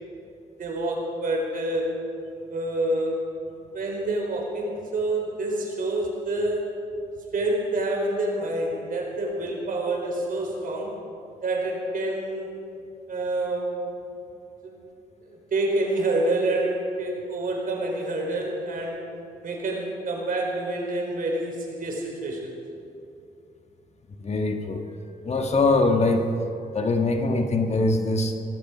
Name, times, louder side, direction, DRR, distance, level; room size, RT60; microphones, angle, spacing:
voice 1, 0.6-2.1 2.5-3.2 3.7-6.6 7.3-10.9 11.4-12.5 13.1-13.7 14.6-14.7 15.3-19.0 19.4-22.6, right 2 dB, 60° right, 0 dB, 4.2 m, -27 dB
voice 2, 24.2-24.8 25.2-26.3 26.7-28.3, left 2 dB, 45° left, 4 dB, 1.6 m, -22 dB
17.5 x 14.5 x 5.0 m, 2.6 s
cardioid pair, 75°, 16 cm